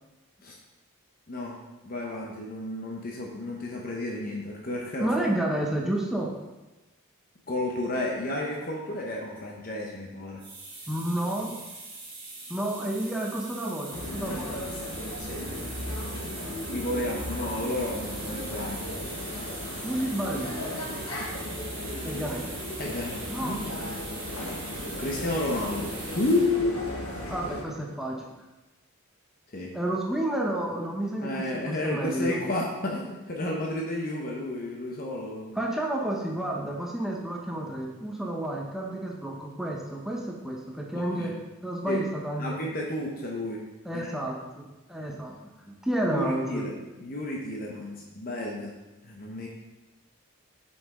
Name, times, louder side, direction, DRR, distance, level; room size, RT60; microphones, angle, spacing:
voice 1, 1.8-5.1 7.5-10.4 15.2-15.4 16.7-18.8 22.8-23.9 25.0-26.7 29.5-29.7 31.2-35.5 41.2-41.3 41.9-42.0 42.4-43.6 43.9-44.1 46.1-48.7 49.0-49.5, left 2 dB, 40° left, -1 dB, 0.8 m, -31 dB
voice 2, 5.0-6.3 10.9-11.6 12.5-14.6 19.8-20.7 22.0-22.5 23.3-23.6 27.3-28.2 29.7-32.4 35.5-41.3 41.6-42.6 43.8-45.3 45.7-46.6, right 1 dB, ahead, -2 dB, 0.7 m, -30 dB
sound 1, 10.4-27.5, right 2 dB, 25° right, 2.3 m, -41 dB
sound 2, 13.9-27.6, left 1 dB, 80° left, 1.2 m, -36 dB
7.8 x 5.5 x 3.7 m, 1.1 s
head